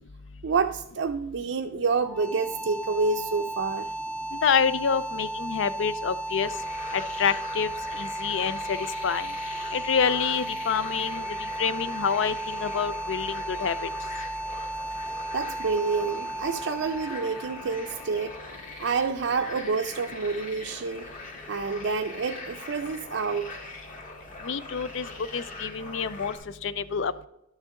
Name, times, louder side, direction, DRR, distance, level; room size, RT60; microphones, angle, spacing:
voice 1, 0.4-3.9 15.3-18.4 18.8-23.6, right 4 dB, 75° right, 4 dB, 0.5 m, -28 dB
sound 1, 2.0-18.9, right 1 dB, 5° left, 0.4 m, -35 dB
voice 2, 4.3-6.5 6.9-8.8 9.0-9.3 9.7-11.3 11.6-13.7 24.4-25.1 25.3-26.3 26.6-27.3, left 6 dB, 75° left, 16 dB, 0.5 m, -27 dB
sound 2, 6.4-26.4, left 2 dB, 45° left, 1.8 m, -42 dB
11.5 x 6.4 x 3.7 m, 0.83 s
head